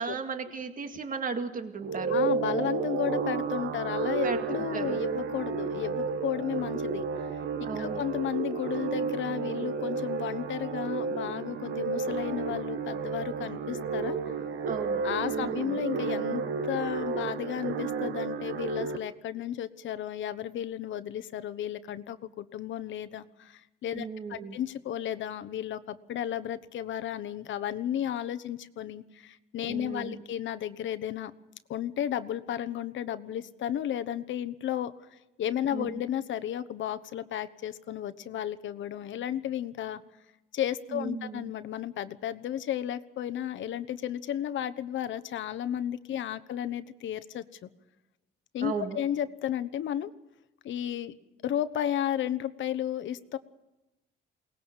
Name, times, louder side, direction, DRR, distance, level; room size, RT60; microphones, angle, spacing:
voice 1, 0.0-2.2 4.2-4.4 4.7-5.0 7.6-8.0 14.7-15.0 15.3-15.8 23.9-24.6 29.7-30.2 35.7-35.9 40.9-41.5 48.6-49.0, right 5 dB, 45° right, 6 dB, 2.2 m, -35 dB
sound 1, 1.8-19.0, right 5 dB, 70° right, 1.6 m, -32 dB
voice 2, 2.1-14.2 15.0-31.3 31.7-40.0 40.5-47.7 48.5-50.1 50.6-51.1 51.4-53.4, left 10 dB, 70° left, 13 dB, 1.1 m, -33 dB
22.5 x 19.0 x 7.3 m, 0.98 s
cardioid pair, 90°, 20 cm